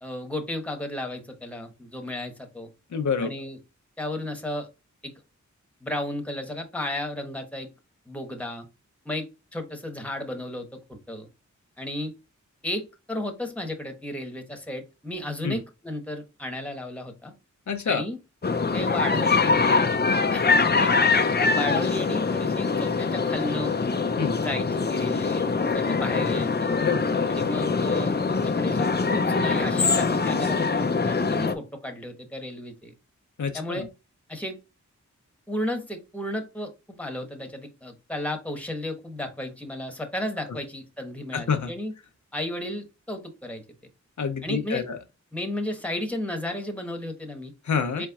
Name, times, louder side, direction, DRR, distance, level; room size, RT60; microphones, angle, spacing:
voice 1, 0.0-2.7 3.2-3.6 4.0-4.7 5.0-5.1 5.8-7.7 8.1-8.7 9.0-11.3 11.8-12.1 12.6-17.3 17.8-18.2 18.7-20.0 20.3-21.1 21.5-23.7 24.3-26.8 27.3-32.9 33.5-33.9 34.3-34.6 35.5-36.7 37.0-41.9 42.3-43.6 44.4-44.8 45.3-47.5 48.0-48.1, left 1 dB, 5° left, 1.2 m, -33 dB
voice 2, 2.9-3.3 15.4-15.6 17.7-18.0 24.2-24.4 26.8-27.6 33.4-33.9 41.3-41.7 44.2-45.0 47.6-48.1, left 6 dB, 70° left, 0.7 m, -28 dB
sound 1, 18.4-31.5, left 4 dB, 35° left, 0.5 m, -23 dB
4.4 x 4.3 x 2.4 m
wide cardioid pair, 90°, 30 cm